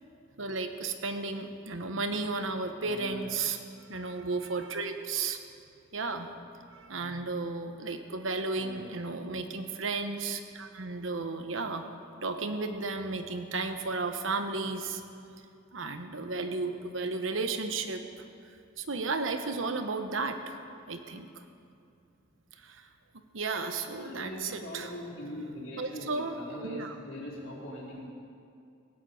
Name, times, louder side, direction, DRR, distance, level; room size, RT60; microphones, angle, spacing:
voice 1, 0.4-3.6 3.9-5.4 5.9-6.3 6.7-11.8 12.2-15.0 15.7-18.0 18.8-20.6 20.9-21.4 22.6-22.9 23.3-24.9 25.8-27.0, right 3 dB, 70° right, 7 dB, 1.1 m, -33 dB
voice 2, 2.8-3.2 8.6-8.9 24.0-28.1, equal, 75° left, -4 dB, 4.2 m, -41 dB
17.0 x 9.5 x 7.8 m, 2.4 s
head